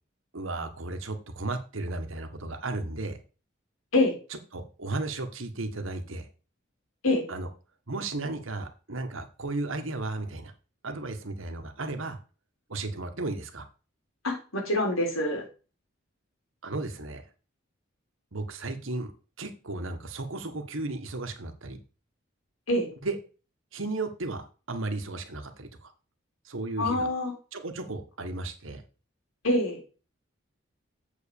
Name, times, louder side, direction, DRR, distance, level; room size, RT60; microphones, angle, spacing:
voice 1, 0.3-3.2 4.3-6.3 7.3-7.5 7.9-10.5 10.8-12.2 12.7-13.6 16.6-17.2 18.3-19.1 19.4-21.8 23.0-23.2 23.7-24.4 24.7-25.9 26.4-27.1 27.5-28.8, right 2 dB, 75° right, 7 dB, 1.5 m, -34 dB
voice 2, 14.2-15.4 22.7-22.9 26.8-27.3 29.4-29.8, left 1 dB, 90° left, 1 dB, 3.9 m, -25 dB
7.9 x 5.2 x 7.0 m, 0.35 s
head